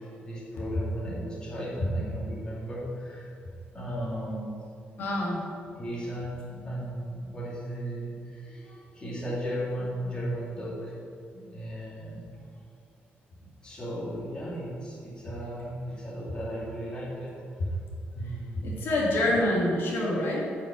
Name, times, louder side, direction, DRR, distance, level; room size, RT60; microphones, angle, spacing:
voice 1, 0.0-3.3 3.7-4.6 5.8-10.9 11.5-12.4 13.4-17.7 18.1-18.9, equal, 20° left, -6 dB, 2.5 m, -36 dB
voice 2, 5.0-5.4 18.6-20.4, left 1 dB, 65° left, -4 dB, 2.1 m, -26 dB
9.8 x 5.7 x 7.3 m, 2.3 s
wide cardioid pair, 175°, 4 cm